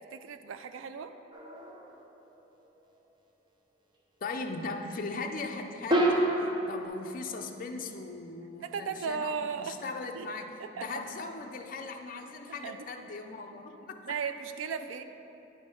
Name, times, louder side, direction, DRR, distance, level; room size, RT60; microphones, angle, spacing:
voice 1, 0.1-1.1 8.6-9.8 10.1-10.3 10.6-10.8 12.5-13.0 14.0-15.0, right 6 dB, 90° right, 9 dB, 0.3 m, -36 dB
sound 1, 1.3-1.9 5.9-6.9, right 1 dB, 25° right, 0.6 m, -27 dB
voice 2, 4.2-14.2, left 3 dB, 45° left, 3 dB, 0.4 m, -39 dB
9.5 x 3.6 x 5.3 m, 2.9 s
head